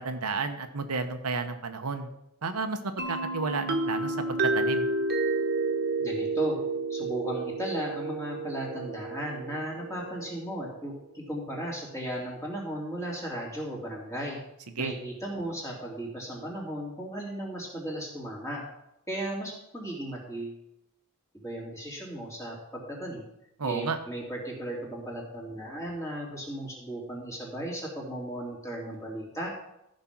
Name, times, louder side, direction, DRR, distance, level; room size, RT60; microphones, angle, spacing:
voice 1, 0.0-2.1 2.4-4.9 14.8-14.9 23.6-24.0, right 4 dB, 90° right, 7 dB, 1.0 m, -32 dB
sound 1, 3.0-10.6, right 2 dB, 45° right, 1.4 m, -30 dB
voice 2, 6.0-6.6 6.9-14.4 14.8-18.6 19.1-20.6 21.3-23.2 23.6-29.5, right 1 dB, 15° left, -3 dB, 3.1 m, -36 dB
14.0 x 5.3 x 6.0 m, 0.85 s
head